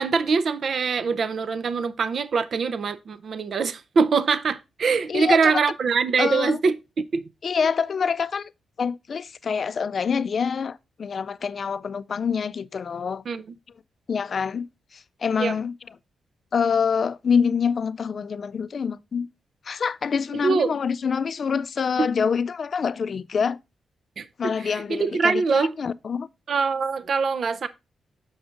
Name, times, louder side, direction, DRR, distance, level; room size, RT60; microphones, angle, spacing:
voice 1, 0.0-6.8 7.1-7.2 13.3-13.4 15.4-15.5 20.4-20.7 24.2-25.7 26.5-27.7, right 5 dB, 60° right, 0.5 m, -23 dB
voice 2, 5.1-5.6 6.2-6.6 7.4-8.5 8.8-13.2 14.1-14.7 14.9-15.7 16.5-19.3 19.7-23.6 24.4-26.3, left 6 dB, 55° left, 0.4 m, -26 dB
7.0 x 5.1 x 3.7 m
cardioid pair, 65°, 0 cm